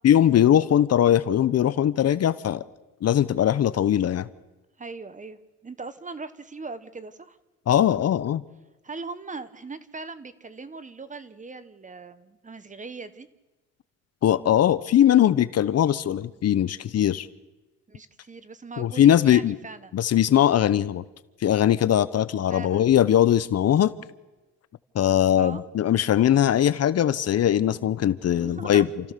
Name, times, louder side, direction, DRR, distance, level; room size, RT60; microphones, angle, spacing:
voice 1, 0.0-2.6 3.0-4.3 7.7-8.4 14.2-17.3 18.8-19.6 19.9-21.0 21.4-23.9 24.9-29.1, left 10 dB, 55° left, 0.8 m, -20 dB
voice 2, 4.8-7.4 8.8-13.3 17.9-20.0 22.5-22.9 25.3-25.6 28.4-28.9, right 4 dB, 25° right, 1.2 m, -39 dB
29.0 x 14.5 x 6.7 m
cardioid pair, 90°, 30 cm